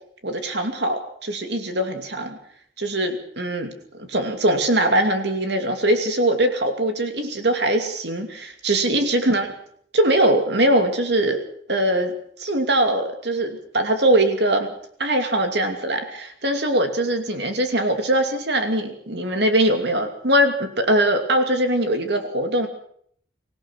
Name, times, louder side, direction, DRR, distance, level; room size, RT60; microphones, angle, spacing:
voice 1, 0.2-2.4 2.8-3.7 4.0-9.5 9.9-11.4 11.7-14.7 15.0-22.7, right 1 dB, 60° right, 6 dB, 2.7 m, -21 dB
24.5 x 16.5 x 6.5 m, 0.63 s
head